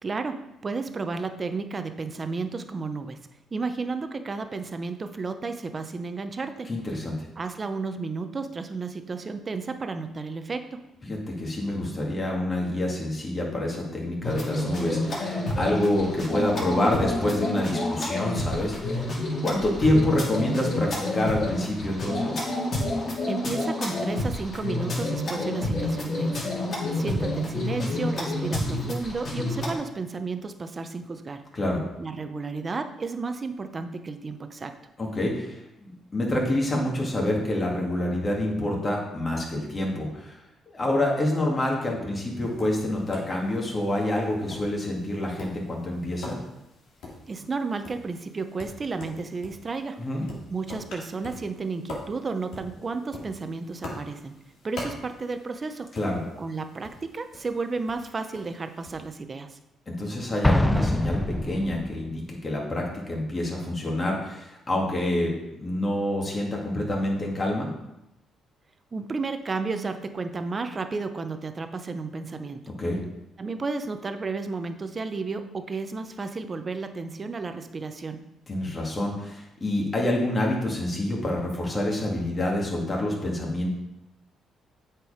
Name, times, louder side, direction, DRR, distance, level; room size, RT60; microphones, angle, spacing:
voice 1, 0.0-3.2 3.5-6.7 7.4-10.9 23.3-26.5 26.9-31.4 32.0-34.8 47.3-50.1 50.5-54.4 54.6-55.9 56.4-59.6 68.9-72.6 73.4-78.2, right 4 dB, 35° right, 8 dB, 0.8 m, -32 dB
voice 2, 6.7-7.1 11.0-19.1 19.4-22.4 31.5-31.8 35.0-40.4 40.7-46.4 50.0-50.2 55.9-56.2 59.9-67.7 72.8-73.0 78.5-83.7, left 1 dB, 30° left, -1 dB, 2.3 m, -27 dB
sound 1, 14.2-29.7, left 1 dB, 50° left, 2.8 m, -29 dB
Tap, 42.3-59.1, left 2 dB, 80° left, 2.2 m, -44 dB
Explosion, 60.4-62.1, left 1 dB, 10° left, 0.6 m, -24 dB
8.1 x 4.5 x 5.0 m, 0.87 s
cardioid pair, 90°, 0 cm